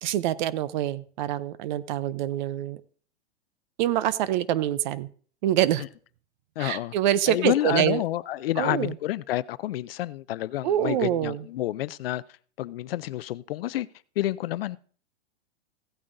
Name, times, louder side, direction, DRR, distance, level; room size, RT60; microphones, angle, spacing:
voice 1, 0.0-2.8 3.8-5.1 5.4-5.8 6.6-8.0 8.6-8.9 10.6-11.4, right 12 dB, 40° right, 0.6 m, -25 dB
voice 2, 6.6-6.9 7.3-12.2 12.6-13.9 14.2-14.8, left 14 dB, 60° left, 0.5 m, -29 dB
16.0 x 8.5 x 2.6 m
hypercardioid pair, 135°, 34 cm